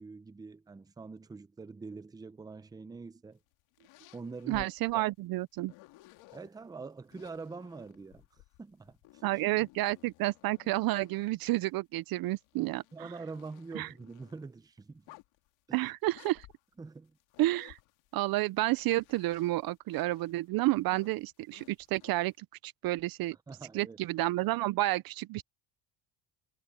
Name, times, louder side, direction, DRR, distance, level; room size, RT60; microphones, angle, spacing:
voice 1, 0.0-3.4 4.1-4.7 4.9-5.0 6.3-8.3 8.6-9.2 12.9-15.2 15.7-15.9 16.8-17.2 23.5-24.0, right 4 dB, 10° right, 0.6 m, -45 dB
sound 1, 3.4-6.5 7.1-11.5 12.1-14.4 14.9-15.5 16.1-18.3 18.7-22.3, left 19 dB, 80° left, 2.2 m, -57 dB
voice 2, 4.5-5.7 9.2-13.1 13.7-13.9 15.7-16.5 17.4-17.8 18.1-23.4 23.7-25.4, right 18 dB, 50° right, 0.5 m, -30 dB
cardioid pair, 145°, 46 cm